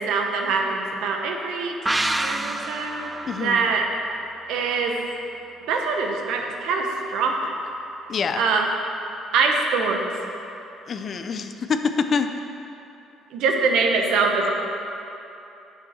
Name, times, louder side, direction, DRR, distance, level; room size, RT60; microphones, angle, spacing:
voice 1, 0.0-3.1 3.4-3.8 4.5-5.0 5.7-7.5 8.4-8.7 9.3-10.1 13.3-14.5, right 4 dB, 75° right, 2 dB, 1.0 m, -23 dB
sound 1, 1.9-5.3 5.6-5.7, right 1 dB, 10° right, 0.5 m, -29 dB
voice 2, 3.2-3.7 8.1-8.4 10.9-12.3, left 5 dB, 50° left, 8 dB, 0.6 m, -25 dB
8.7 x 7.0 x 4.3 m, 2.9 s
supercardioid pair, 65°, 0 cm